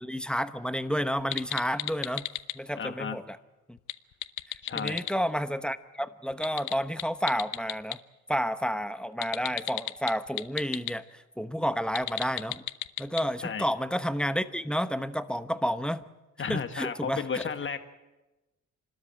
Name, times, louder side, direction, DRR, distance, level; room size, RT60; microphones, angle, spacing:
voice 1, 0.0-2.3 2.5-3.4 3.7-3.8 4.7-8.0 8.3-12.6 13.0-16.0 16.5-17.2, equal, 5° left, 11 dB, 1.0 m, -30 dB
sound 1, 1.2-2.6 3.8-5.1 6.3-8.0 9.2-10.9 11.8-13.2, left 15 dB, 85° left, 0.8 m, -34 dB
voice 2, 2.8-3.2 4.6-5.0 13.4-13.7 16.4-17.8, left 6 dB, 40° left, 8 dB, 1.8 m, -33 dB
27.5 x 13.0 x 9.0 m, 1.1 s
cardioid pair, 90°, 30 cm